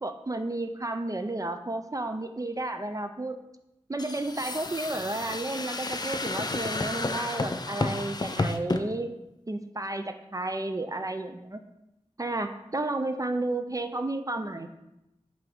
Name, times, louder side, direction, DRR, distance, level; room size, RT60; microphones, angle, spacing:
voice 1, 0.0-3.4 3.9-9.1 9.5-11.6 12.2-14.7, right 2 dB, 30° right, 8 dB, 0.4 m, -32 dB
sound 1, 4.0-8.8, left 2 dB, 35° left, 0.5 m, -31 dB
5.6 x 5.0 x 3.6 m, 0.89 s
cardioid pair, 45°, 12 cm